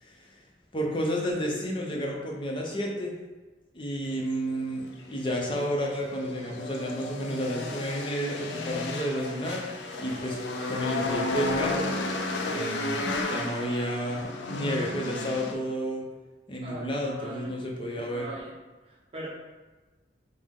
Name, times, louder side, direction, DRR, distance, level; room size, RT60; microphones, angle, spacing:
voice 1, 0.7-3.1 3.7-9.6 10.0-10.4 10.7-11.9 12.5-16.1 16.5-18.3, equal, 25° left, -1 dB, 0.6 m, -31 dB
sound 1, 4.1-15.5, left 2 dB, 75° left, 0.5 m, -33 dB
voice 2, 16.6-17.5 18.0-18.5 18.8-19.3, right 1 dB, 30° right, -5 dB, 0.8 m, -41 dB
5.4 x 2.1 x 3.6 m, 1.2 s
head